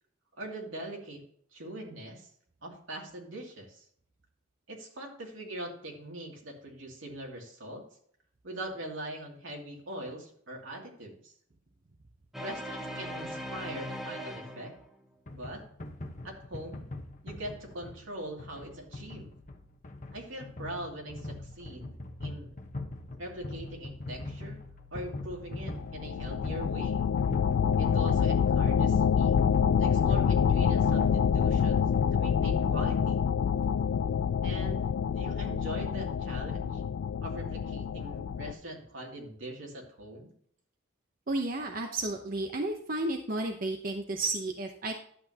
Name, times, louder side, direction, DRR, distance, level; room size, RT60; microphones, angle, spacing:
voice 1, 0.4-1.2 1.5-2.3 2.6-3.8 4.7-7.8 8.4-11.3 12.4-14.7 15.3-15.6 16.2-16.9 17.2-19.3 20.1-22.5 23.2-24.6 24.9-27.1 27.8-29.4 29.8-33.2 34.4-36.8 37.2-40.3, right 1 dB, 75° right, 0 dB, 2.6 m, -42 dB
sound 1, 12.3-15.0, equal, ahead, 1.0 m, -39 dB
sound 2, 15.3-33.6, left 2 dB, 40° left, 1.1 m, -41 dB
sound 3, 25.7-38.5, left 7 dB, 70° left, 0.3 m, -27 dB
voice 2, 41.3-44.9, right 2 dB, 45° right, 3 dB, 0.8 m, -32 dB
11.0 x 7.9 x 2.8 m, 0.62 s
head